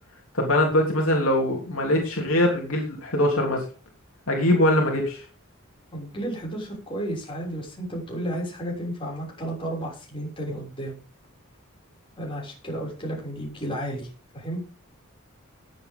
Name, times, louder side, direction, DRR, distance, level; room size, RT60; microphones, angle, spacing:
voice 1, 0.3-3.6 4.3-5.2, left 1 dB, 70° left, 0 dB, 3.2 m, -22 dB
voice 2, 5.9-11.0 12.2-14.1 14.3-14.6, right 1 dB, 25° left, -2 dB, 6.5 m, -32 dB
19.0 x 8.1 x 3.9 m, 0.35 s
head